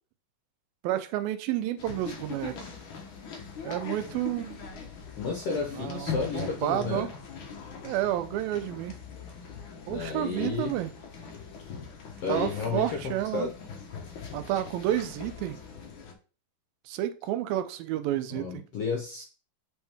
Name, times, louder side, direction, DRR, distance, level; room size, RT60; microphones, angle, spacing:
voice 1, 0.8-2.6 3.6-4.6 5.8-7.1 7.8-9.0 9.9-10.9 12.3-13.5 14.3-15.6 16.9-18.6, right 13 dB, 85° right, 10 dB, 2.5 m, -30 dB
sound 1, 1.8-16.1, left 6 dB, 90° left, 1.1 m, -41 dB
voice 2, 5.2-7.1 9.9-10.7 12.2-13.5 18.3-19.2, left 4 dB, 70° left, 1 dB, 1.4 m, -32 dB
7.7 x 4.4 x 3.5 m, 0.36 s
omnidirectional pair, 4.1 m